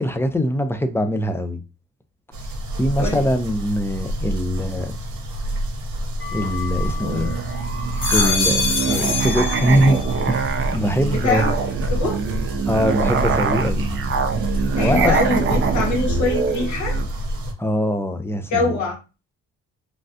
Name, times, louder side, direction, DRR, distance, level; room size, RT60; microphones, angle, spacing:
voice 1, 0.0-1.6 2.8-4.9 6.3-7.3 8.1-10.0 10.3-11.5 12.7-13.8 14.8-15.1 17.6-18.7, equal, 10° left, 0.4 m, -22 dB
sound 1, 2.3-17.5, equal, 75° right, 0.8 m, -27 dB
voice 2, 3.0-3.3 11.1-12.2 14.7-17.0 18.5-18.9, left 3 dB, 70° left, 1.5 m, -23 dB
sound 2, 6.2-7.3 7.8-10.2 10.6-11.2, left 4 dB, 40° left, 0.8 m, -26 dB
Musical instrument, 7.0-17.1, right 6 dB, 45° right, 0.5 m, -25 dB
3.2 x 2.4 x 2.7 m
cardioid pair, 90°, 30 cm